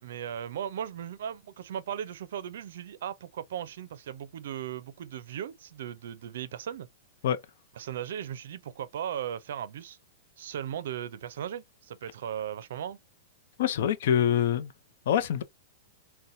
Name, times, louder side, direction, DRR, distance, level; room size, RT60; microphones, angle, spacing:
voice 1, 0.0-6.9 7.8-10.0 10.4-13.0, right 9 dB, 75° right, 0.4 m, -37 dB
voice 2, 13.6-14.7 15.1-15.4, left 9 dB, 65° left, 0.5 m, -25 dB
4.0 x 2.1 x 2.5 m
hypercardioid pair, 135°, 0 cm